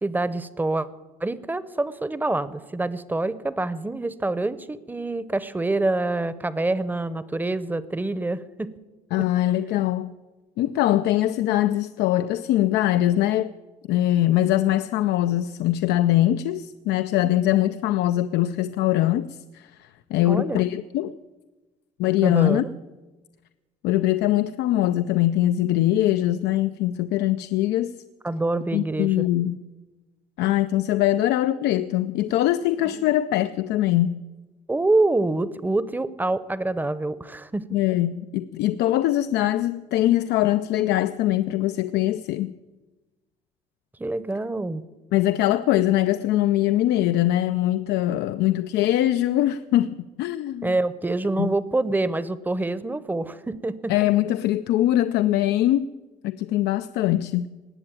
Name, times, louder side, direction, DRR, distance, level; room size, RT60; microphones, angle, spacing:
voice 1, 0.0-0.9 1.2-8.7 9.2-9.3 20.2-20.6 22.2-22.7 28.2-29.2 33.0-33.1 34.7-37.7 44.0-44.8 50.6-53.9, right 2 dB, 10° right, 0.8 m, -26 dB
voice 2, 9.1-10.1 10.6-13.5 13.9-21.2 22.0-22.6 23.8-27.9 28.7-29.6 30.4-34.2 37.7-42.5 45.1-50.8 51.4-51.5 53.9-55.9 56.2-57.5, left 14 dB, 80° left, 0.5 m, -22 dB
19.0 x 7.8 x 9.0 m
cardioid pair, 110°, 17 cm